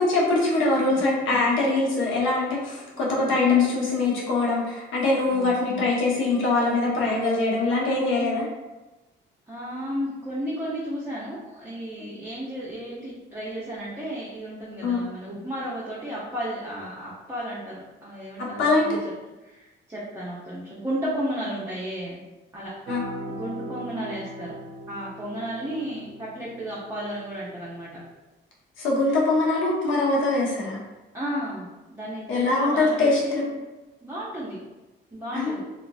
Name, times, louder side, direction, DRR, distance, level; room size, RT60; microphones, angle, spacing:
voice 1, 0.0-8.5 14.8-15.1 15.3-15.4 18.4-18.9 22.9-23.0 28.8-30.8 32.3-33.5 35.3-35.6, left 3 dB, 80° left, -3 dB, 0.8 m, -23 dB
voice 2, 2.9-3.3 5.2-5.6 9.5-19.0 19.4-22.2 22.5-22.7 23.3-24.5 24.9-27.9 31.1-33.5 34.0-34.6 35.1-35.6, equal, 15° right, -8 dB, 0.7 m, -33 dB
sound 1, 22.9-28.1, right 1 dB, 65° right, 0.5 m, -40 dB
2.9 x 2.4 x 2.2 m, 1.1 s
cardioid pair, 90°, 20 cm